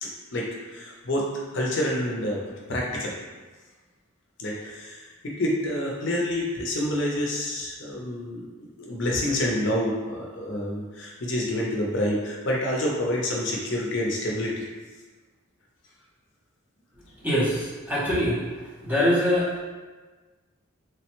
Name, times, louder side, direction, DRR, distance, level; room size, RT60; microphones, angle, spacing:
voice 1, 0.0-1.3 1.5-2.4 2.7-3.1 4.4-14.7, left 1 dB, 55° left, -3 dB, 0.5 m, -28 dB
voice 2, 17.2-18.4 18.8-19.6, equal, 10° right, -8 dB, 0.6 m, -23 dB
3.3 x 2.1 x 2.9 m, 1.3 s
head